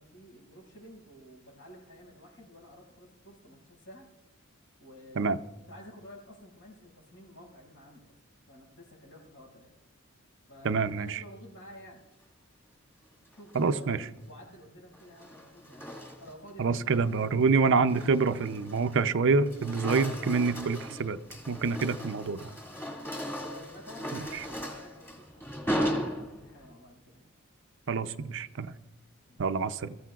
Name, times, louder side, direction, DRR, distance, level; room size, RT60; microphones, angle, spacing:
voice 1, 0.0-4.1 4.8-8.1 8.5-9.7 10.5-12.0 13.3-15.8 16.2-17.9 23.5-27.3 29.3-29.5, equal, 65° left, -3 dB, 6.1 m, -51 dB
voice 2, 10.6-11.2 13.5-14.0 16.6-21.2 21.5-22.5 27.9-28.7 29.4-30.0, right 4 dB, 60° right, 12 dB, 0.5 m, -26 dB
sound 1, 13.3-13.8 14.9-16.5 16.9-17.2 17.7-19.1 19.4-26.7, equal, 10° left, 2.2 m, -37 dB
23.5 x 14.5 x 2.4 m, 0.99 s
head